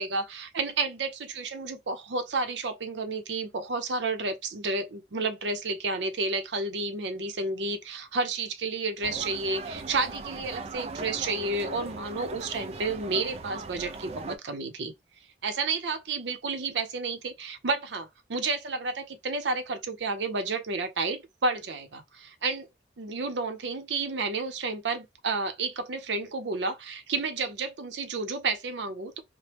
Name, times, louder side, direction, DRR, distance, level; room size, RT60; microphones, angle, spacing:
voice 1, 0.0-14.9 15.4-22.7 23.0-29.2, right 3 dB, 85° right, 0.6 m, -31 dB
sound 1, 9.0-14.4, right 3 dB, 35° right, 0.3 m, -39 dB
2.9 x 2.1 x 3.3 m
head